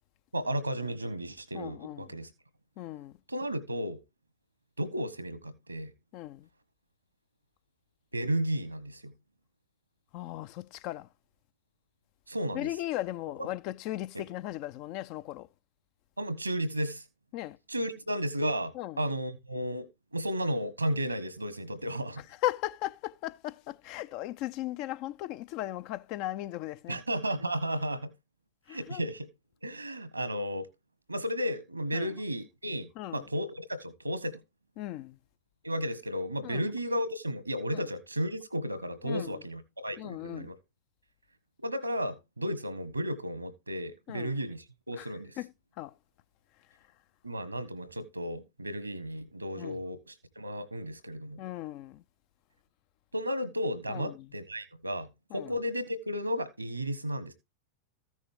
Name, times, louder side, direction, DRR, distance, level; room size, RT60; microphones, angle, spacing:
voice 1, 0.3-2.3 3.3-4.0 4.8-5.9 8.1-9.1 12.3-12.7 16.2-17.0 17.7-19.9 20.1-22.2 26.9-28.1 28.7-29.3 29.6-30.7 31.1-34.4 35.6-40.5 41.6-45.3 47.2-51.4 53.1-55.1 55.3-57.3, equal, 85° right, 1.5 m, -33 dB
voice 2, 1.5-2.1 2.8-3.2 6.1-6.5 10.1-11.1 12.5-15.5 17.3-17.6 18.7-19.0 22.2-27.0 28.7-29.0 31.9-32.2 32.9-33.3 34.8-35.2 36.4-36.7 37.7-37.9 39.0-39.4 40.0-40.5 44.1-44.3 44.9-45.9 49.6-49.8 51.4-52.0 53.9-54.3 55.3-55.5, left 15 dB, 45° left, 0.6 m, -37 dB
14.5 x 6.3 x 3.6 m
figure-of-eight pair, 90°, 0 cm